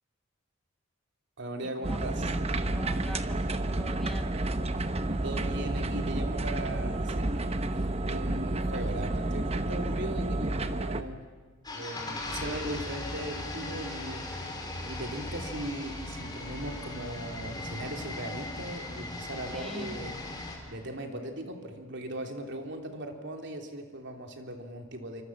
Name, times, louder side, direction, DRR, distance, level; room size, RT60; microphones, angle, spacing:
voice 1, 1.4-2.2 5.2-7.8 8.1-11.2 11.7-14.5 14.8-20.2 20.7-25.2, right 1 dB, 60° right, 4 dB, 3.0 m, -39 dB
sound 1, 1.8-11.0, right 2 dB, 30° right, 1.0 m, -30 dB
voice 2, 2.7-4.3 19.5-20.0, equal, ahead, 5 dB, 1.4 m, -42 dB
sound 2, 11.6-20.6, left 2 dB, 20° left, 4.5 m, -38 dB
28.0 x 25.5 x 7.2 m, 1.4 s
head